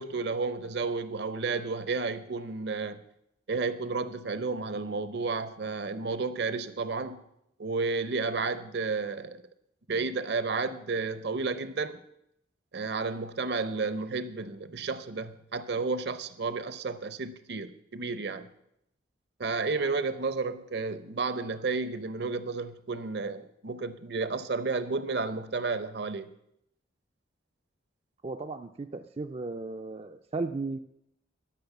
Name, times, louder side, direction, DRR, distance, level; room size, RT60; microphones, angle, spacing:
voice 1, 0.0-3.0 3.5-7.2 7.6-9.4 9.9-12.0 12.7-18.5 19.4-26.3, right 4 dB, 55° right, 13 dB, 0.7 m, -32 dB
voice 2, 28.2-30.8, right 3 dB, 30° right, 6 dB, 0.4 m, -35 dB
11.5 x 6.2 x 7.1 m, 0.77 s
head